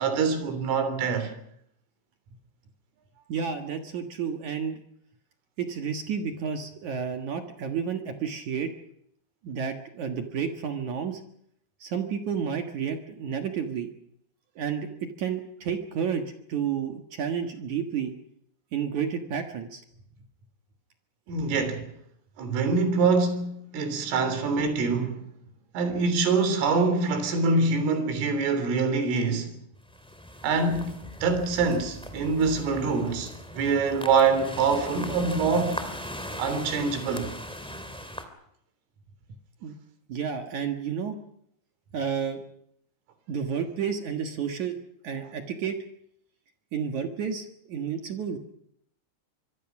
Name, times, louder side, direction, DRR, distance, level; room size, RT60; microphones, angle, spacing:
voice 1, 0.0-1.3 21.3-21.9 22.4-25.3 25.7-29.6 30.4-35.8 36.4-37.3, right 4 dB, 90° right, 5.9 m, -25 dB
voice 2, 3.3-4.8 5.6-8.7 9.4-11.2 11.8-13.9 14.6-14.9 15.2-16.2 16.5-18.1 18.7-19.8 39.6-39.8 40.1-41.2 41.9-42.4 43.3-44.8 45.0-45.8 46.7-48.4, right 7 dB, 60° right, 2.0 m, -31 dB
sound 1, 29.8-38.2, equal, 5° left, 0.9 m, -39 dB
25.5 x 23.5 x 6.1 m
omnidirectional pair, 5.6 m